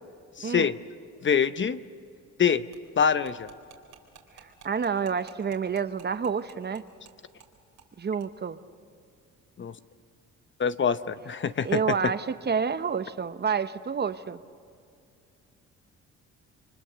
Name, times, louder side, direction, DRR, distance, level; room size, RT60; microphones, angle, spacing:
voice 1, 0.4-0.7 1.2-1.8 2.4-2.6 3.0-3.5 9.6-9.7 10.6-12.1, left 7 dB, 40° left, 12 dB, 0.8 m, -25 dB
sound 1, 2.7-7.1 7.4-7.5 7.8-7.9 8.2-8.3, right 9 dB, 85° right, 3.6 m, -52 dB
voice 2, 4.4-6.8 8.0-8.6 11.6-14.4, right 6 dB, 35° right, 12 dB, 0.9 m, -29 dB
29.0 x 24.5 x 6.9 m, 2.3 s
cardioid pair, 90°, 30 cm